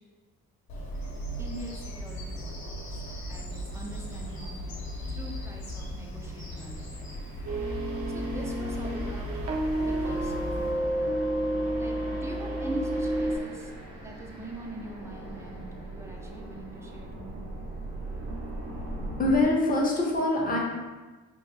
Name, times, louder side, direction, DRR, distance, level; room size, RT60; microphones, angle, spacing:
Bird vocalization bird call bird song, 0.7-10.7, equal, 60° left, 1.0 m, -38 dB
voice 1, 1.4-2.6 2.9-3.0 3.3-7.2 8.1-9.4 9.8-10.8 11.8-11.9 12.2-13.7 14.0-17.4, right 1 dB, 10° right, 0 dB, 0.5 m, -43 dB
sound 1, 4.2-4.4 5.0-19.4, right 1 dB, 80° right, 1.2 m, -42 dB
sound 2, 7.4-13.4, right 1 dB, 50° right, 0.7 m, -30 dB
voice 2, 19.2-20.6, left 2 dB, 30° left, -1 dB, 0.7 m, -24 dB
2.9 x 2.6 x 3.2 m, 1.2 s
cardioid pair, 90°, 30 cm